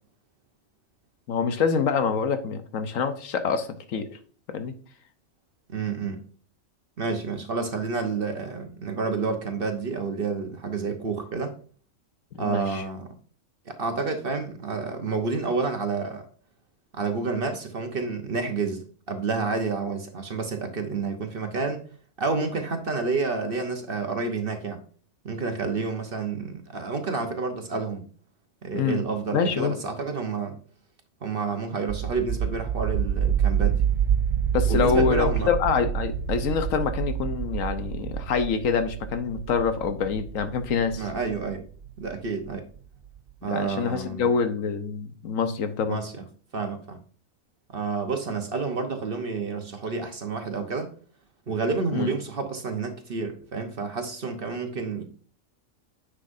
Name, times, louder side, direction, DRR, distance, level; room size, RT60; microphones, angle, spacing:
voice 1, 1.3-4.2 4.5-4.7 12.3-12.8 28.7-29.0 29.3-29.8 34.5-41.1 43.5-46.0 51.9-52.1, left 6 dB, 85° left, 1.3 m, -26 dB
voice 2, 5.7-6.2 7.0-11.5 12.4-13.1 13.7-16.3 17.0-21.8 22.2-24.8 25.2-28.0 28.6-30.5 31.2-33.9 34.7-35.5 41.0-41.7 42.0-42.7 43.4-44.3 45.9-46.2 46.5-47.0 47.7-50.9 51.5-55.0, right 4 dB, 50° right, 1.0 m, -29 dB
sound 1, 31.9-42.6, right 8 dB, 65° right, 0.4 m, -27 dB
9.8 x 6.4 x 2.6 m
omnidirectional pair, 1.4 m